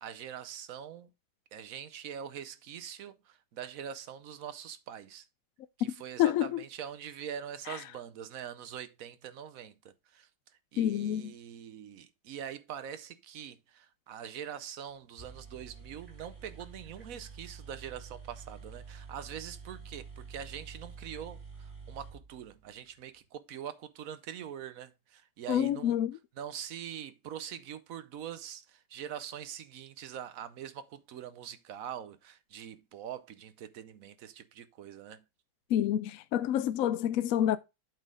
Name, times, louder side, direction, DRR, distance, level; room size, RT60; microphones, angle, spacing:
voice 1, 0.0-1.1 1.5-5.3 5.8-10.3 10.7-26.0 26.4-35.2, right 9 dB, 65° right, 1.0 m, -43 dB
voice 2, 6.2-6.6 7.7-7.8 10.8-11.3 25.5-26.2 35.7-37.6, left 11 dB, 70° left, 0.8 m, -28 dB
sound 1, 14.9-15.0 15.2-23.0, right 5 dB, 35° right, 3.0 m, -48 dB
8.1 x 4.2 x 4.9 m
omnidirectional pair, 1.8 m